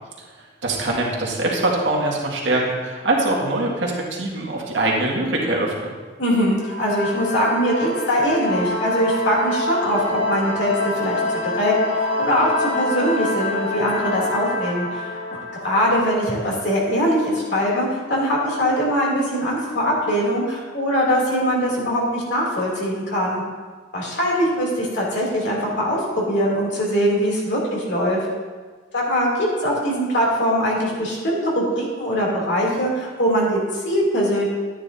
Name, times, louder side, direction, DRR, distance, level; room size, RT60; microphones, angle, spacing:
voice 1, 0.4-5.9, right 2 dB, 75° right, -3 dB, 2.0 m, -23 dB
voice 2, 6.2-15.2 15.6-23.4 23.9-28.2 28.9-34.5, equal, 65° left, -4 dB, 3.0 m, -22 dB
sound 1, 6.6-17.0, left 2 dB, 80° left, 1.7 m, -26 dB
12.0 x 9.7 x 2.7 m, 1.5 s
head